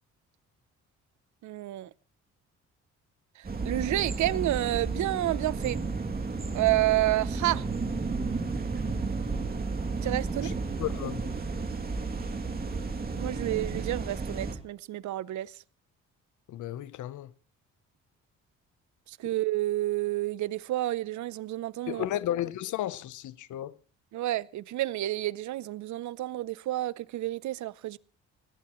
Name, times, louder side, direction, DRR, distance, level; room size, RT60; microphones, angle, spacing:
voice 1, 1.4-1.9 3.4-5.8 6.5-7.6 10.0-10.5 13.2-15.5 19.1-22.0 24.1-28.0, right 15 dB, 70° right, 0.7 m, -30 dB
sound 1, 3.4-14.6, right 4 dB, 30° right, 2.7 m, -32 dB
voice 2, 10.8-11.2 16.5-17.3 21.9-23.7, left 12 dB, 75° left, 0.9 m, -33 dB
21.0 x 17.5 x 3.1 m
cardioid pair, 90°, 30 cm